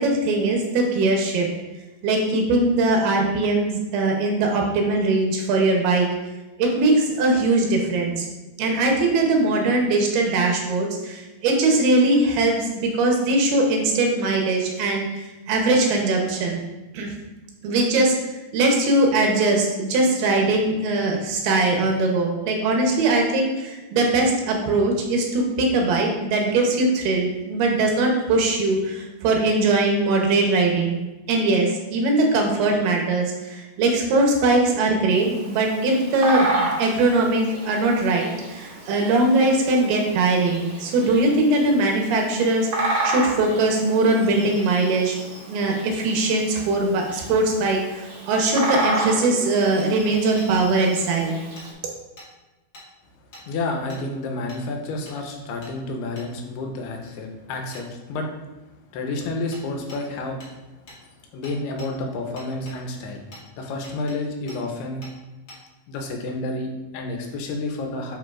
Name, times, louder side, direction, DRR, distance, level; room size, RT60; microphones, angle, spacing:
voice 1, 0.0-1.5 2.0-6.1 6.6-8.3 8.6-16.6 16.9-17.1 17.6-18.1 18.5-31.0 31.3-45.2 45.5-51.4, right 2 dB, 75° right, 1 dB, 2.8 m, -21 dB
Bird vocalization bird call bird song, 35.1-51.7, right 2 dB, 55° right, 1.6 m, -31 dB
Hammer, 49.8-49.9 50.4-50.5 51.0-51.1 51.5-51.7 52.2-52.3 52.7-52.9 53.3-53.4 53.9-54.0 54.5-54.6 55.0-55.2 55.6-55.7 56.1-56.3 57.7-57.8 59.5-59.6 59.9-60.0 60.4-60.5 60.9-61.0 61.4-61.9 62.4-62.8 63.3-63.4 63.8-64.2 64.5-64.6 65.0-65.1 65.5-65.6, left 1 dB, 65° left, 1.1 m, -44 dB
voice 2, 53.4-58.3 58.9-60.4 61.3-63.2 63.6-65.0 65.9-68.2, left 2 dB, 85° left, 2 dB, 2.8 m, -30 dB
9.2 x 4.6 x 2.4 m, 1.1 s
omnidirectional pair, 4.7 m